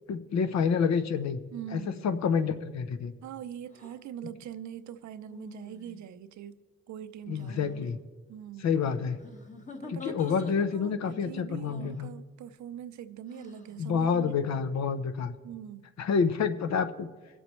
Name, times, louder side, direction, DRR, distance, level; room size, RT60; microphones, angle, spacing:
voice 1, 0.1-1.4 1.7-3.1 7.3-8.0 8.6-9.3 9.9-12.1 13.8-15.3 16.0-17.1, left 6 dB, 60° left, 0.9 m, -28 dB
voice 2, 1.5-2.2 3.2-6.6 6.9-7.7 8.3-8.8 9.8-14.5 15.4-15.9, right 10 dB, 70° right, 0.7 m, -43 dB
sound 1, 3.7-4.0 5.3-6.1 7.3-7.8 9.2-10.9 11.6-12.1 13.3-13.8, left 4 dB, 25° left, 1.3 m, -46 dB
23.5 x 7.8 x 3.2 m
cardioid pair, 90°, 30 cm